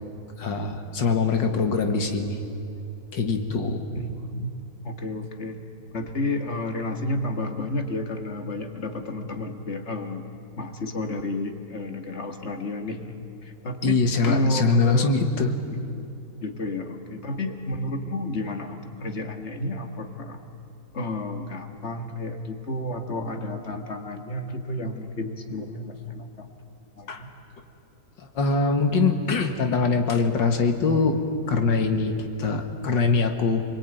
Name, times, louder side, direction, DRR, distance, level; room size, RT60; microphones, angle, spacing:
voice 1, 0.4-2.4 3.1-3.8 13.8-15.5 27.1-27.2 28.2-31.2 31.5-33.6, left 4 dB, 80° left, 5 dB, 2.4 m, -23 dB
voice 2, 3.9-4.5 4.8-5.6 5.9-10.2 10.6-13.1 13.4-16.0 16.4-20.4 20.9-26.5 27.0-27.3, left 1 dB, 40° left, 5 dB, 2.0 m, -31 dB
28.0 x 21.5 x 9.3 m, 2.7 s
omnidirectional pair, 2.0 m